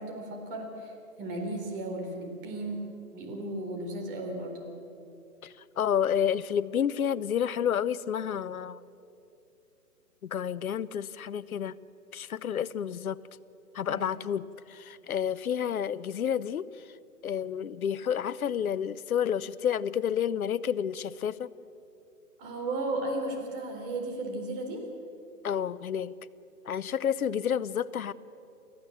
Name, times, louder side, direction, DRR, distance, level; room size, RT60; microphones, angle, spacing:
voice 1, 0.0-4.6 13.9-14.0 22.4-24.9, right 2 dB, 35° right, 2 dB, 4.3 m, -35 dB
voice 2, 5.4-8.8 10.2-11.7 12.1-13.2 13.7-16.7 17.2-21.5 25.4-26.1 26.6-28.1, left 8 dB, 65° left, 16 dB, 0.9 m, -30 dB
28.5 x 15.0 x 7.4 m, 2.7 s
hypercardioid pair, 145°, 47 cm